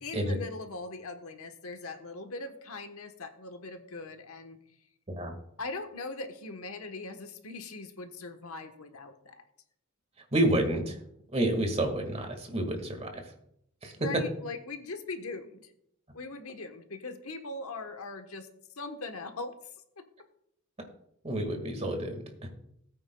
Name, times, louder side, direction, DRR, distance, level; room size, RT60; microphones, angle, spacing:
voice 1, 0.0-4.6 5.6-9.4 14.0-15.6 16.1-18.5 18.7-19.6 20.0-20.1, left 3 dB, 75° left, 6 dB, 1.2 m, -40 dB
voice 2, 10.3-10.9 11.3-13.1 13.8-13.9 21.2-22.5, right 1 dB, 30° right, 4 dB, 1.8 m, -29 dB
19.0 x 8.8 x 2.3 m, 0.73 s
head